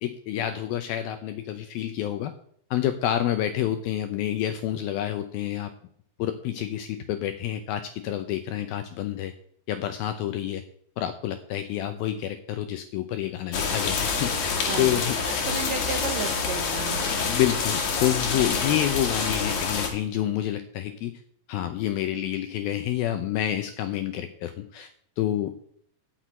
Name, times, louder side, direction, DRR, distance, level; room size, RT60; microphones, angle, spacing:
voice 1, 0.0-2.3 2.7-5.7 6.2-9.3 9.7-10.6 11.0-15.2 17.0-21.2 21.5-24.9 25.2-25.6, left 12 dB, 80° left, 9 dB, 2.2 m, -28 dB
sound 1, 13.5-19.9, left 5 dB, 55° left, 2.8 m, -27 dB
voice 2, 14.7-15.0 15.5-17.3, right 6 dB, 75° right, 4 dB, 2.0 m, -33 dB
12.5 x 5.9 x 9.3 m, 0.62 s
omnidirectional pair, 5.0 m